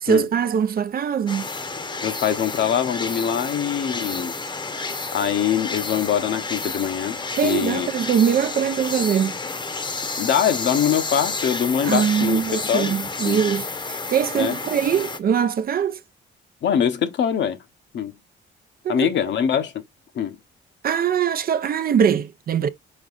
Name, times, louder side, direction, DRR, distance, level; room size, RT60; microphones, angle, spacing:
voice 1, 0.0-1.5 7.4-9.4 11.8-16.0 18.8-19.1 20.8-22.7, right 8 dB, 50° right, 0.6 m, -22 dB
sound 1, 1.3-15.2, left 3 dB, 25° left, 0.9 m, -30 dB
voice 2, 2.0-4.3 5.1-7.2 7.4-7.9 10.2-12.9 13.3-13.4 14.3-14.6 16.6-17.6 17.9-18.1 18.9-19.8 20.1-20.4, left 8 dB, 65° left, 1.0 m, -23 dB
5.4 x 3.5 x 2.5 m
cardioid pair, 90°, 20 cm